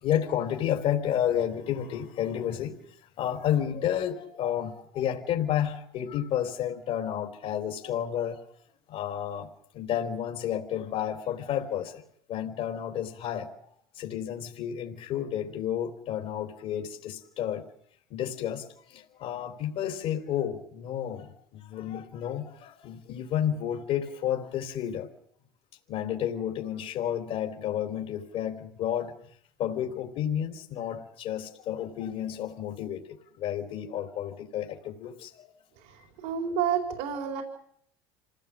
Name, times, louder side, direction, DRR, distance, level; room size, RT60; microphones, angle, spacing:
voice 1, 0.0-2.8 3.2-8.5 8.9-9.5 9.7-12.0 12.3-13.5 13.9-17.7 18.1-25.1 25.9-29.1 29.6-33.1 33.4-35.5, left 10 dB, 60° left, 3 dB, 3.4 m, -31 dB
voice 2, 35.8-37.4, right 8 dB, 75° right, 3 dB, 4.4 m, -30 dB
27.0 x 18.0 x 7.4 m, 0.67 s
supercardioid pair, 95°, 12 cm